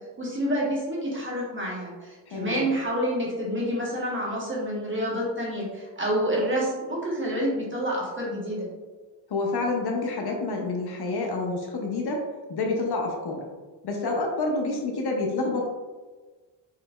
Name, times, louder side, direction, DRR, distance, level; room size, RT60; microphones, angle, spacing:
voice 1, 0.2-8.7, equal, 25° right, -4 dB, 1.2 m, -28 dB
voice 2, 2.3-2.7 9.3-12.2 12.5-13.4 13.8-15.7, left 3 dB, 55° left, 1 dB, 0.8 m, -28 dB
4.7 x 3.1 x 2.3 m, 1.3 s
cardioid pair, 100°, 48 cm